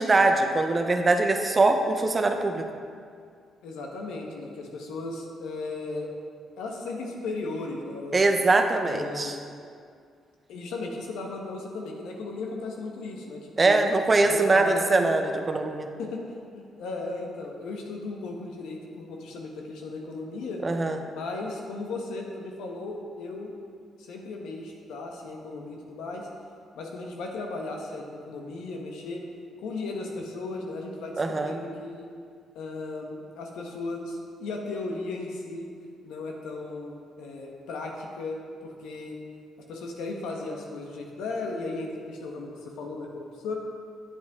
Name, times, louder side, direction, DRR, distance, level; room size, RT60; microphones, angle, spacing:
voice 1, 0.0-2.7 8.1-9.3 13.6-15.9 20.6-21.0 31.2-31.6, right 3 dB, 30° right, 5 dB, 0.8 m, -22 dB
voice 2, 3.6-6.1 6.6-8.2 8.8-9.5 10.5-13.8 14.2-15.1 16.0-20.6 21.1-23.5 24.0-26.3 26.7-29.2 29.6-32.1 32.5-35.7 36.0-39.2 39.7-43.5, left 3 dB, 85° left, 0 dB, 1.2 m, -36 dB
8.6 x 7.8 x 3.6 m, 2.2 s
cardioid pair, 90°, 0 cm